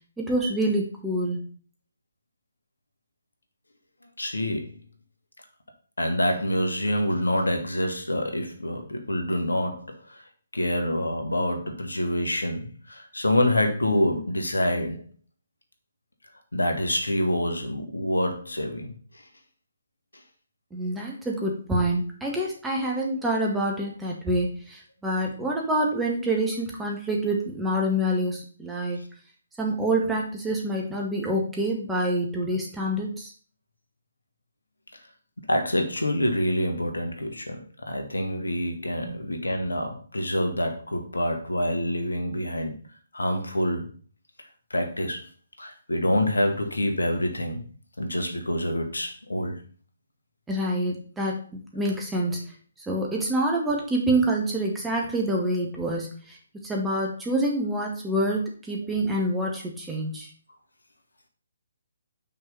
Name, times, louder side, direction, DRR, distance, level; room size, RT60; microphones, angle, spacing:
voice 1, 0.2-1.4 20.7-29.0 29.6-33.3 39.0-39.2 50.5-52.4 52.9-56.4 56.6-60.3, right 1 dB, 10° right, -1 dB, 1.7 m, -27 dB
voice 2, 4.2-4.7 6.0-10.2 10.5-15.1 16.5-18.9 35.5-42.7 43.1-43.9 44.7-45.2 45.6-47.6 48.0-49.6, left 1 dB, 80° left, 5 dB, 1.6 m, -26 dB
5.9 x 4.6 x 5.6 m, 0.40 s
figure-of-eight pair, 140°, 0 cm